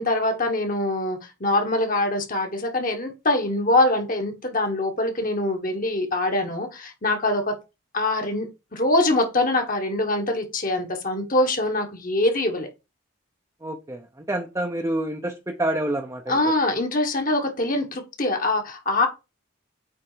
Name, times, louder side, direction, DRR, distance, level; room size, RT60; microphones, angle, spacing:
voice 1, 0.0-7.5 7.9-12.7 16.3-19.1, left 2 dB, 40° left, 1.4 m, -24 dB
voice 2, 13.6-16.4, right 1 dB, 15° right, 0.7 m, -28 dB
8.6 x 3.5 x 5.0 m
head